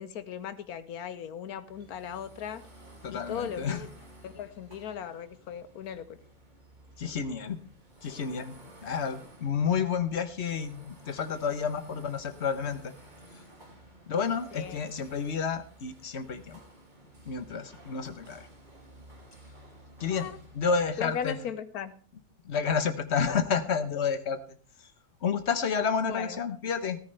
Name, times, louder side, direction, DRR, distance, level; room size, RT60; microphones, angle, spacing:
voice 1, 0.0-2.6 3.1-3.9 4.2-6.2 14.5-14.8 20.1-20.4 21.0-21.9 26.0-26.4, left 8 dB, 85° left, 13 dB, 1.4 m, -37 dB
sound 1, 1.6-21.3, right 1 dB, 30° right, 2.7 m, -53 dB
voice 2, 3.0-3.8 7.0-7.6 8.0-8.5 8.8-12.9 14.1-16.6 17.2-18.5 20.0-20.3 20.5-21.4 22.4-24.4 25.2-27.0, left 6 dB, 50° left, 11 dB, 1.2 m, -30 dB
14.0 x 13.5 x 3.3 m, 0.42 s
omnidirectional pair, 1.5 m